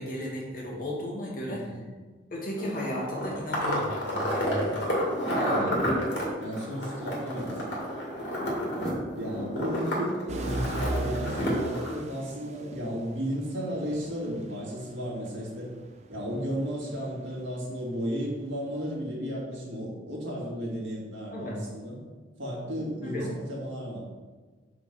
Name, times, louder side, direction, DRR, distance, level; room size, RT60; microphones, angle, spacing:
voice 1, 0.0-1.7 2.3-4.8 21.3-21.6 23.0-23.3, left 1 dB, 45° left, -3 dB, 1.8 m, -34 dB
voice 2, 1.5-1.8 5.3-5.9 6.4-7.6 9.2-15.7 16.1-22.0 22.4-24.0, equal, 75° right, -4 dB, 2.2 m, -34 dB
sound 1, 2.6-11.9, equal, 65° left, 2.2 m, -30 dB
sound 2, 10.3-18.1 18.5-18.9, right 2 dB, 35° right, 0.5 m, -38 dB
5.3 x 4.8 x 6.0 m, 1.4 s
head